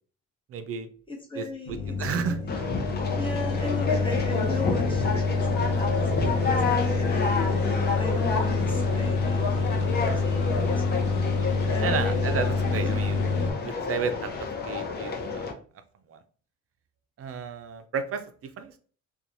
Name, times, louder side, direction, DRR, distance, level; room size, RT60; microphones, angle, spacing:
voice 1, 0.5-0.9 1.4-2.4 11.8-13.2 13.6-14.3 14.6-15.5 16.1-16.2 17.2-18.8, right 6 dB, 50° right, 9 dB, 0.5 m, -32 dB
voice 2, 1.1-2.5 3.1-9.8 10.1-11.0 11.6-12.1 12.7-12.9, left 3 dB, 15° left, 0 dB, 1.1 m, -38 dB
sound 1, 1.7-13.5, left 4 dB, 85° left, 0.7 m, -27 dB
Conversation, 2.5-15.5, left 4 dB, 35° left, 0.7 m, -30 dB
2.8 x 2.3 x 2.6 m, 0.42 s
cardioid pair, 90°, 30 cm